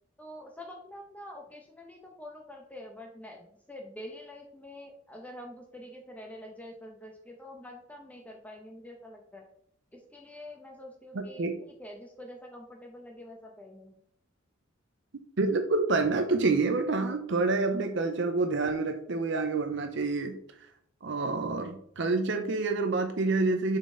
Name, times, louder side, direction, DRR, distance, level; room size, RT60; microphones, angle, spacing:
voice 1, 0.2-9.5 9.9-14.0, left 1 dB, 5° left, 1 dB, 0.7 m, -46 dB
voice 2, 11.1-11.5 15.4-20.4 21.0-23.8, right 3 dB, 60° right, 5 dB, 0.6 m, -27 dB
6.6 x 4.2 x 3.8 m, 0.67 s
head